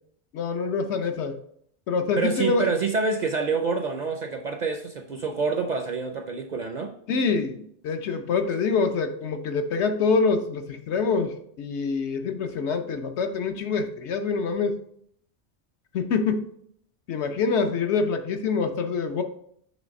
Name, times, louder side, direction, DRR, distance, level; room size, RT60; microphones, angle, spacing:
voice 1, 0.3-1.4 1.9-2.7 7.1-14.8 15.9-16.5 17.1-19.2, left 4 dB, 75° left, 6 dB, 1.0 m, -25 dB
voice 2, 2.2-6.9, right 4 dB, 50° right, 6 dB, 0.6 m, -27 dB
7.3 x 3.2 x 5.1 m, 0.67 s
omnidirectional pair, 1.2 m